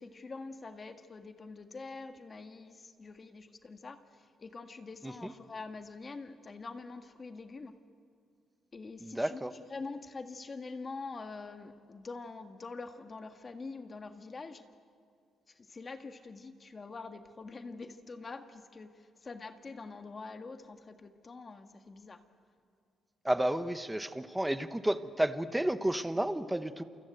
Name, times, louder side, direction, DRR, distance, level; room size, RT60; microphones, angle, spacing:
voice 1, 0.0-7.7 8.7-14.6 15.5-22.2, left 3 dB, 35° left, 7 dB, 1.8 m, -45 dB
voice 2, 9.0-9.5 23.2-26.8, right 1 dB, 5° right, 11 dB, 1.1 m, -31 dB
28.5 x 24.5 x 8.1 m, 2.4 s
cardioid pair, 90°, 0 cm